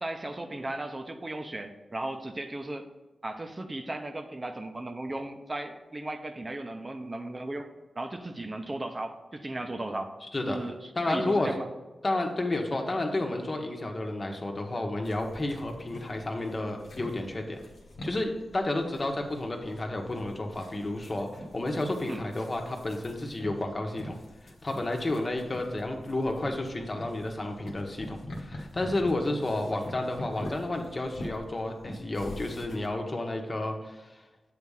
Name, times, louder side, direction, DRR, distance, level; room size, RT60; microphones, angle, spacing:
voice 1, 0.0-2.9 3.2-7.7 8.0-10.1 10.4-10.8 11.1-11.6 22.1-22.2, right 1 dB, 35° right, 6 dB, 0.8 m, -36 dB
voice 2, 10.3-10.7 11.0-11.5 12.0-17.6 18.0-24.2 24.6-34.2, left 2 dB, 40° left, 3 dB, 1.2 m, -31 dB
sound 1, 15.0-32.9, left 1 dB, 85° left, 1.2 m, -45 dB
7.7 x 3.5 x 5.6 m, 1.1 s
cardioid pair, 50°, 0 cm